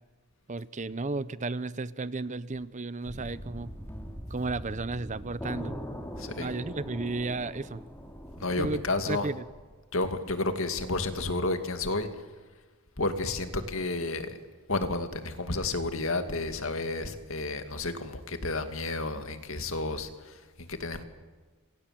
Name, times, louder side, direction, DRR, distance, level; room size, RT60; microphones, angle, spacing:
voice 1, 0.5-3.7 4.3-5.8 6.4-7.8 8.6-8.8 9.1-9.4, right 3 dB, 35° right, 16 dB, 0.7 m, -33 dB
sound 1, 3.0-8.8, equal, 10° left, 3.3 m, -41 dB
voice 2, 6.2-6.5 8.4-9.3 9.9-12.1 13.0-14.4 14.7-21.0, left 2 dB, 60° left, 8 dB, 2.4 m, -31 dB
27.5 x 24.5 x 7.7 m, 1.4 s
head